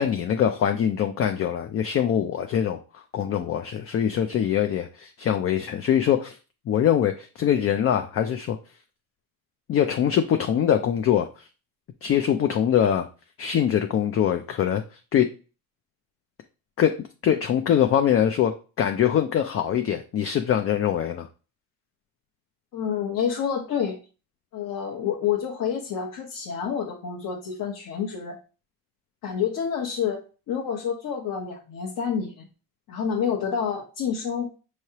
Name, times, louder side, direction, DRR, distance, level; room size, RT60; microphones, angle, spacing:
voice 1, 0.0-6.4 6.7-8.6 9.7-11.5 12.0-13.1 13.4-14.8 15.1-15.3 16.8-17.0 17.2-21.3, left 9 dB, 40° left, 6 dB, 0.4 m, -23 dB
voice 2, 22.7-24.0 24.5-28.4 29.2-30.2 30.5-32.5 32.9-34.5, left 7 dB, 60° left, -2 dB, 1.0 m, -28 dB
5.5 x 3.2 x 2.8 m, 0.35 s
cardioid pair, 115°, 37 cm